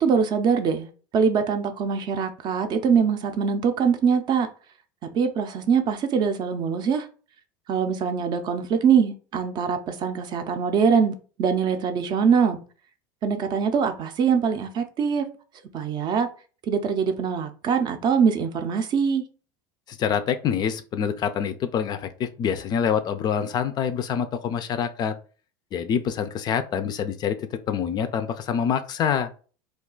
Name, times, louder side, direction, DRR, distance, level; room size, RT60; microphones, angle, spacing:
voice 1, 0.0-4.5 5.1-7.1 7.7-12.6 13.2-15.3 15.7-16.3 16.7-19.2, right 6 dB, 40° right, 0.5 m, -23 dB
voice 2, 19.9-25.1 25.7-29.3, left 8 dB, 35° left, 0.3 m, -26 dB
2.3 x 2.3 x 3.7 m
supercardioid pair, 115°, 11 cm